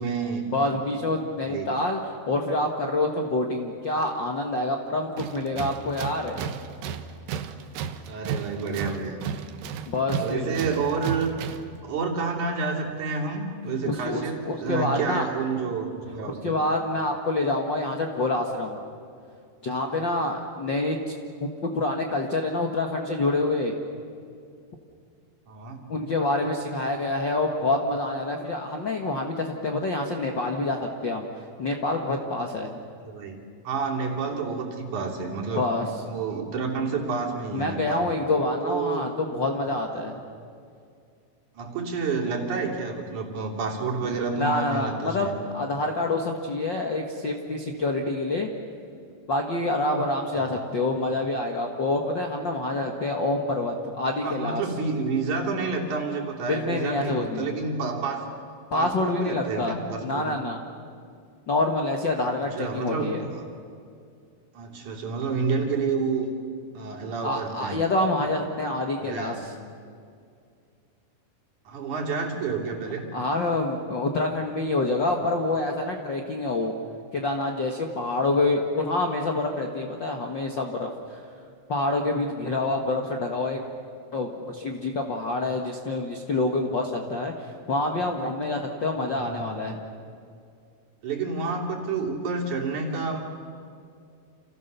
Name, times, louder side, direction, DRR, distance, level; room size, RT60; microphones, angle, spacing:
voice 1, 0.0-0.5 1.4-1.8 6.8-6.9 8.1-9.2 10.1-16.5 25.5-25.9 33.0-35.7 36.1-38.1 38.6-39.2 41.5-45.4 50.3-50.6 54.2-58.3 58.7-60.3 62.6-63.4 64.5-66.3 66.7-67.8 69.0-69.4 71.7-73.1 89.0-89.6 91.0-93.2, right 4 dB, 50° right, -1 dB, 4.3 m, -29 dB
voice 2, 0.5-2.0 2.3-6.4 9.9-10.5 13.8-15.3 16.4-18.8 19.6-21.0 21.4-23.8 25.9-31.3 31.6-32.8 35.5-35.9 37.5-40.2 44.0-45.3 45.5-48.5 49.3-54.6 56.5-57.6 58.7-59.7 60.0-60.6 61.5-63.2 67.2-69.5 73.1-76.7 77.1-81.2 81.7-83.6 84.1-89.8, left 2 dB, 85° left, 2 dB, 1.0 m, -27 dB
Tools, 5.2-11.8, right 7 dB, 70° right, 2.6 m, -34 dB
30.0 x 28.5 x 6.9 m, 2.3 s
omnidirectional pair, 4.8 m